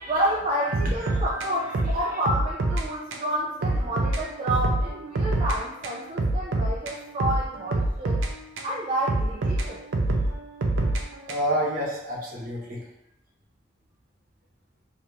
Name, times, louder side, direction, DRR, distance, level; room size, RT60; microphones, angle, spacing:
voice 1, 0.1-8.2 8.6-9.8, right 1 dB, 35° right, -4 dB, 0.4 m, -29 dB
sound 1, 0.7-2.9 3.1-3.3 3.6-5.6 5.8-8.7 9.1-11.6, right 2 dB, 90° right, 0.5 m, -26 dB
voice 2, 1.0-1.4 11.3-12.8, equal, 50° right, -3 dB, 0.9 m, -29 dB
2.8 x 2.6 x 3.2 m, 0.86 s
head